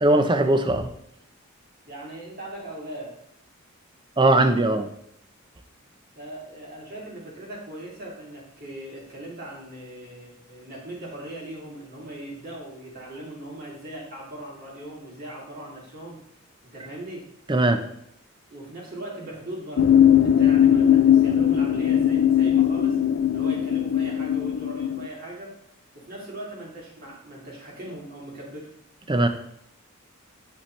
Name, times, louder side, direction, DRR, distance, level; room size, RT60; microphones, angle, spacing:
voice 1, 0.0-0.9 4.2-4.9 17.5-17.8 29.1-29.3, right 2 dB, 20° right, 7 dB, 0.6 m, -19 dB
voice 2, 1.9-3.2 6.2-16.2 16.6-17.3 18.5-23.0 23.3-25.6 25.9-28.7, right 1 dB, 45° right, -3 dB, 2.6 m, -39 dB
sound 1, 19.8-25.1, left 9 dB, 65° left, 0.4 m, -19 dB
8.6 x 5.5 x 3.2 m, 0.74 s
head